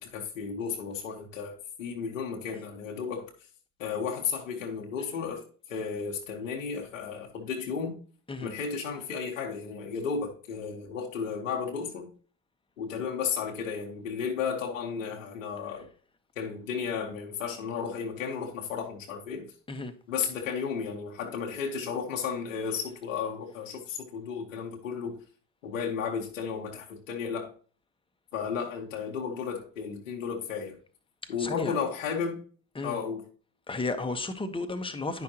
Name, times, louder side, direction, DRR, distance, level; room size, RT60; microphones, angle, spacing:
voice 1, 0.0-3.3 3.8-8.0 8.4-12.1 12.8-15.9 16.3-19.5 20.1-25.2 25.6-27.5 28.3-30.8 31.3-32.4 32.8-33.2, left 6 dB, 90° left, 1.4 m, -33 dB
voice 2, 31.4-31.8 32.7-33.0 33.7-35.2, left 3 dB, 15° left, 1.2 m, -33 dB
9.6 x 5.8 x 2.9 m
hypercardioid pair, 75°, 38 cm